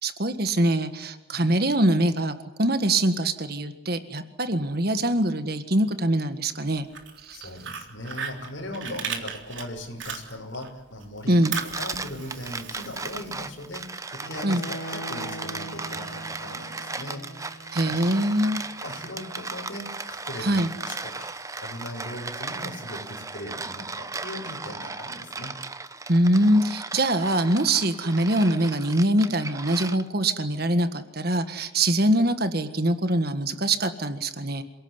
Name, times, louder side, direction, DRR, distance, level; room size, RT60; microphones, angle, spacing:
voice 1, 0.0-6.9 7.2-7.5 11.3-11.6 14.4-14.6 17.7-18.6 20.4-20.7 26.1-34.6, right 1 dB, 50° right, 10 dB, 1.7 m, -23 dB
Fire, 6.8-10.7 11.0-13.8, right 6 dB, 70° right, 3.6 m, -37 dB
voice 2, 7.3-11.4 11.7-17.2 17.8-18.4 18.8-21.3 21.6-25.5, left 1 dB, 65° left, 0 dB, 5.7 m, -39 dB
sound 1, 11.3-30.3, right 3 dB, 15° right, 0.8 m, -36 dB
Bowed string instrument, 14.2-20.2, right 1 dB, 90° left, 3.1 m, -42 dB
28.0 x 18.0 x 9.8 m, 1.0 s
head